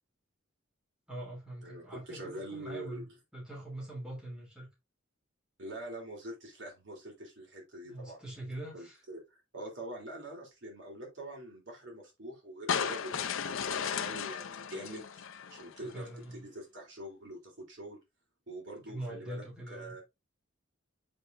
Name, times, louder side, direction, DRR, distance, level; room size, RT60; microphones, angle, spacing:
voice 1, 1.1-4.7 7.8-9.0 15.7-16.5 18.9-20.0, right 1 dB, 5° right, 3.0 m, -43 dB
voice 2, 1.6-3.1 5.6-8.2 8.7-18.0 18.5-20.0, right 1 dB, 60° right, 3.4 m, -45 dB
sound 1, 12.7-15.9, left 7 dB, 75° left, 0.6 m, -35 dB
7.9 x 5.0 x 2.5 m
head